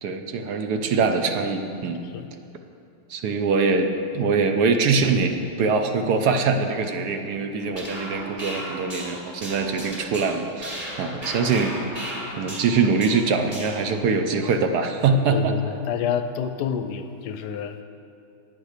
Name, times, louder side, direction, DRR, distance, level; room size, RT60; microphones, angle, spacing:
voice 1, 0.0-2.0 3.1-3.9 4.1-15.6, right 4 dB, 65° right, 6 dB, 1.2 m, -23 dB
sound 1, 7.6-14.0, right 1 dB, 20° right, 2.0 m, -35 dB
voice 2, 15.3-17.8, left 8 dB, 75° left, 9 dB, 1.1 m, -28 dB
9.4 x 9.2 x 6.6 m, 2.5 s
omnidirectional pair, 1.9 m